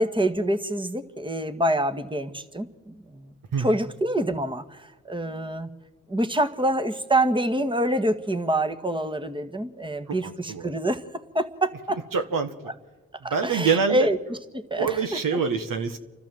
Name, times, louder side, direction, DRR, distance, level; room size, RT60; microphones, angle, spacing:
voice 1, 0.0-3.2 3.6-5.7 6.1-11.0 11.3-12.0 13.2-14.2 14.5-15.0, right 1 dB, 15° right, 9 dB, 1.7 m, -26 dB
voice 2, 10.1-10.7 12.1-12.5 13.3-14.1 14.8-16.0, right 6 dB, 70° right, 7 dB, 1.6 m, -25 dB
29.0 x 12.5 x 7.7 m, 1.3 s
supercardioid pair, 40°, 34 cm